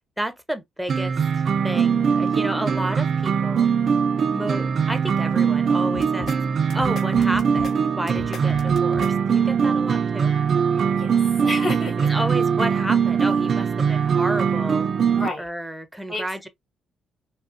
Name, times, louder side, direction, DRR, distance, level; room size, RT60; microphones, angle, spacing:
voice 1, 0.2-1.2 1.6-3.7 4.3-6.3 6.7-10.3 12.1-14.9 15.4-16.5, right 1 dB, ahead, 0.6 m, -31 dB
sound 1, 0.9-15.3, right 6 dB, 50° right, 0.3 m, -21 dB
sound 2, 5.9-6.4 6.7-7.7 8.1-9.1, left 8 dB, 60° left, 0.5 m, -36 dB
voice 2, 10.7-12.1 15.2-15.4 16.1-16.2, left 1 dB, 35° left, 1.8 m, -30 dB
3.6 x 2.1 x 2.4 m
cardioid pair, 90°, 0 cm